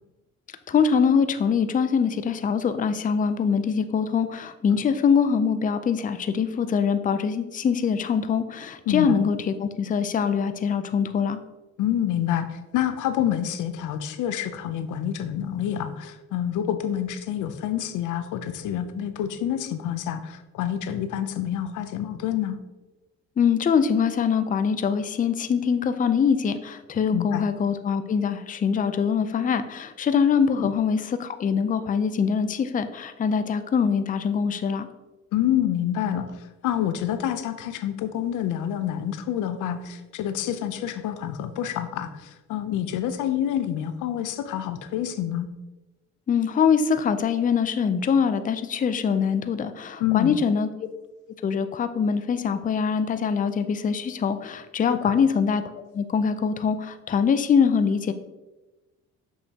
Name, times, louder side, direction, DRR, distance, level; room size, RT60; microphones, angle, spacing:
voice 1, 0.7-11.4 23.4-34.9 46.3-50.7 51.4-55.6 55.9-58.1, left 6 dB, 30° left, 10 dB, 0.4 m, -23 dB
voice 2, 8.9-9.2 11.8-22.6 27.1-27.5 30.6-30.7 35.3-45.5 50.0-50.4 54.9-55.2, left 10 dB, 85° left, 10 dB, 0.6 m, -27 dB
6.4 x 5.5 x 2.8 m, 1.1 s
cardioid pair, 90°, 30 cm